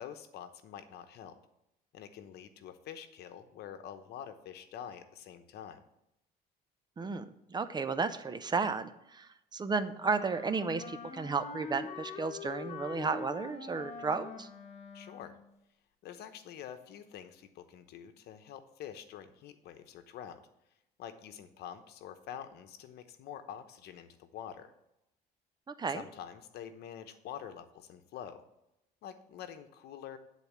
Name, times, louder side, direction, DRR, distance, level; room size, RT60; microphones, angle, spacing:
voice 1, 0.0-1.4 1.9-5.8 14.9-15.4 16.0-20.4 21.0-24.7 25.9-28.4 29.0-30.2, left 9 dB, 75° left, 9 dB, 0.9 m, -46 dB
voice 2, 7.0-14.5 25.7-26.0, right 4 dB, 25° right, 11 dB, 0.6 m, -33 dB
Wind instrument woodwind instrument, 10.0-15.5, left 5 dB, 40° left, 1.4 m, -44 dB
10.0 x 4.1 x 7.1 m, 0.85 s
cardioid pair, 110°, 17 cm